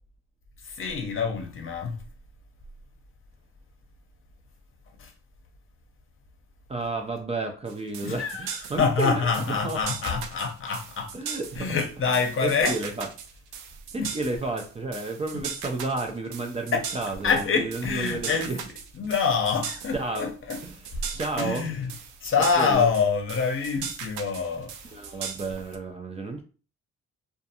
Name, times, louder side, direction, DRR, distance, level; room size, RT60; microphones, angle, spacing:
voice 1, 0.7-2.0 5.0-5.1 8.0-11.2 11.6-12.8 14.0-14.1 16.7-16.8 17.2-18.5 19.0-20.6 21.4-21.9 22.2-24.7, left 5 dB, 45° left, 0.7 m, -26 dB
voice 2, 6.7-9.8 11.1-11.7 12.4-13.1 13.9-18.6 19.0-19.1 19.9-20.3 20.6-20.8 21.1-21.7 22.6-22.9 24.9-26.4, right 3 dB, 20° right, 0.4 m, -31 dB
sound 1, 7.7-25.8, right 7 dB, 85° right, 0.5 m, -38 dB
2.5 x 2.3 x 2.7 m
cardioid pair, 90°, 30 cm